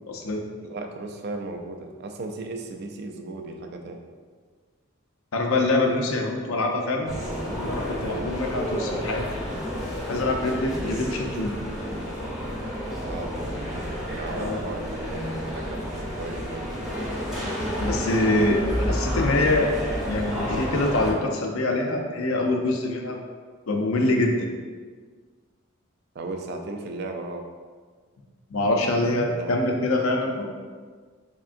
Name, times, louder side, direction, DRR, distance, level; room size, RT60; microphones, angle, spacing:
voice 1, 0.1-0.4 5.3-7.1 7.5-9.3 10.1-11.5 14.3-14.7 17.8-18.6 18.9-19.7 20.1-23.2 23.7-24.5 28.5-30.5, left 2 dB, 80° left, 2 dB, 0.5 m, -24 dB
voice 2, 0.6-4.0 8.0-8.3 13.0-13.3 14.1-15.9 16.2-16.7 26.2-27.4 29.2-29.7, right 3 dB, 50° right, 4 dB, 0.3 m, -35 dB
sound 1, 7.1-21.1, equal, ahead, 0.7 m, -30 dB
3.6 x 3.5 x 2.5 m, 1.5 s
head